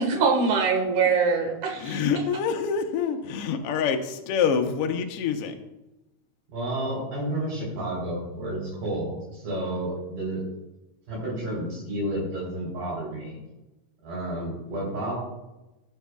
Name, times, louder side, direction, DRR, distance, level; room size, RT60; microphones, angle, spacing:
voice 1, 0.0-2.0, right 5 dB, 75° right, 2 dB, 2.9 m, -23 dB
voice 2, 1.8-5.5, left 6 dB, 75° left, 4 dB, 1.4 m, -26 dB
voice 3, 6.5-10.4 11.1-13.4 14.0-15.2, right 1 dB, 90° right, -7 dB, 4.9 m, -31 dB
17.5 x 6.3 x 2.3 m, 1.0 s
omnidirectional pair, 3.6 m